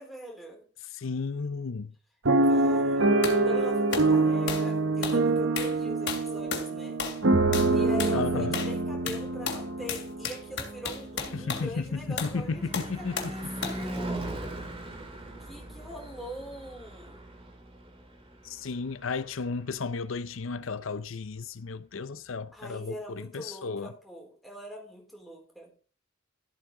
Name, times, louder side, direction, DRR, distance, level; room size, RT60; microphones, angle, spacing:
voice 1, 0.0-0.6 2.4-3.1 3.4-7.0 7.7-14.5 15.4-17.2 22.5-25.7, left 1 dB, ahead, 4.1 m, -42 dB
voice 2, 0.8-1.9 8.1-8.6 11.3-13.5 18.4-23.9, left 4 dB, 75° left, 0.6 m, -34 dB
sound 1, 2.2-10.4 11.0-11.1 11.3-11.6, right 2 dB, 70° right, 1.1 m, -25 dB
sound 2, 3.2-3.4 3.9-4.1 4.5-4.7 5.0-5.2 5.6-5.8 6.1-6.7 7.0-7.2 7.5-7.7 8.0-8.2 8.5-8.8 9.1-11.7 12.2-12.4 12.7-13.4 13.6-13.8, left 6 dB, 60° left, 2.9 m, -34 dB
Car passing by / Truck / Engine, 10.1-20.2, right 1 dB, 30° right, 2.0 m, -41 dB
13.5 x 8.4 x 3.8 m
head